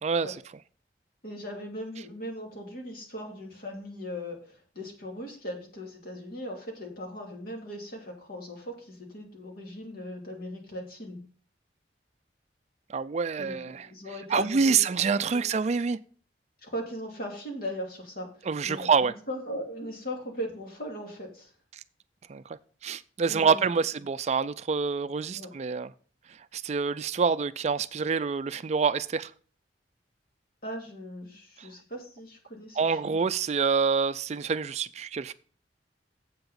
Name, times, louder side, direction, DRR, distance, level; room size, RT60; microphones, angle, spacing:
voice 1, 0.0-0.4 12.9-13.9 14.3-16.0 18.5-19.1 22.3-22.4 22.8-25.9 26.5-29.3 31.6-31.7 32.8-35.3, right 5 dB, 40° right, 0.4 m, -26 dB
voice 2, 1.2-11.2 13.4-15.4 16.6-21.5 23.3-23.6 25.3-25.5 30.6-33.2, equal, 55° left, 2.7 m, -39 dB
7.9 x 5.9 x 6.8 m
head